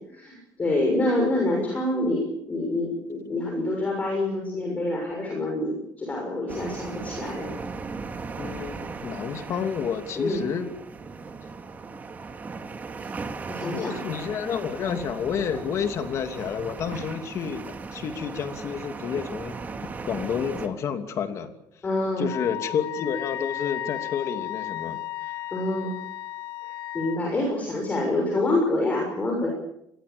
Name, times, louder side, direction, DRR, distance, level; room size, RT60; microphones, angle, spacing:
voice 1, 0.0-7.5 10.2-10.4 13.0-13.2 13.5-14.0 16.9-17.0 21.8-22.3 25.5-26.0 26.6-29.5, left 2 dB, 20° left, 0 dB, 6.5 m, -27 dB
sound 1, 6.5-20.7, right 4 dB, 25° right, 2.7 m, -37 dB
voice 2, 8.4-10.7 13.6-19.6 20.0-21.5 22.2-25.0, left 7 dB, 45° left, 7 dB, 2.8 m, -30 dB
Wind instrument woodwind instrument, 22.3-27.2, left 14 dB, 70° left, 1.4 m, -34 dB
28.5 x 21.5 x 7.0 m, 0.80 s
cardioid pair, 160°, 7 cm